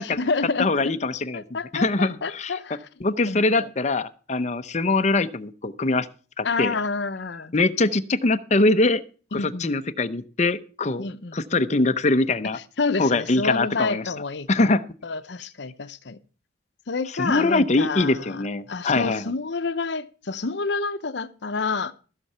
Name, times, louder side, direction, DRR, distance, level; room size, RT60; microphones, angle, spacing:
voice 1, 0.0-0.9 1.3-2.8 3.3-3.7 6.4-7.5 9.4-9.7 11.0-11.4 12.8-14.7 15.0-16.2 16.9-21.9, left 4 dB, 70° left, 0.8 m, -29 dB
voice 2, 0.6-1.4 1.7-2.6 3.0-6.1 6.4-6.7 7.5-9.0 9.6-11.1 11.3-12.6 13.0-14.1 14.5-14.8 17.2-19.3, left 2 dB, 40° left, 0.7 m, -23 dB
15.0 x 6.8 x 5.5 m
head